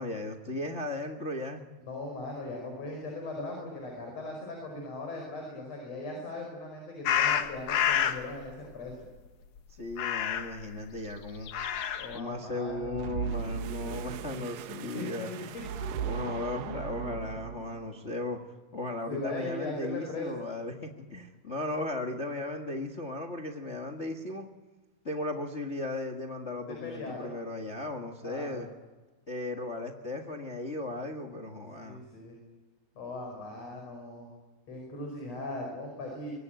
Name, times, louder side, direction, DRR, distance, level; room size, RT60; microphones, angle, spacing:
voice 1, 0.0-1.6 9.7-11.5 12.1-15.5 16.0-18.4 18.7-24.5 25.0-28.7 29.3-32.0, left 2 dB, 85° left, 3 dB, 0.6 m, -36 dB
voice 2, 1.8-9.0 12.0-13.0 14.9-15.6 19.1-20.4 26.7-27.3 28.2-28.6 31.8-32.4 33.0-34.3 34.7-36.3, left 2 dB, 40° left, 2 dB, 6.2 m, -39 dB
sound 1, 7.1-8.2 9.9-10.6 11.4-12.2, left 9 dB, 60° left, 2.5 m, -28 dB
sound 2, 12.7-17.9, right 9 dB, 75° right, 2.5 m, -37 dB
24.5 x 21.5 x 9.1 m, 1.2 s
omnidirectional pair, 4.4 m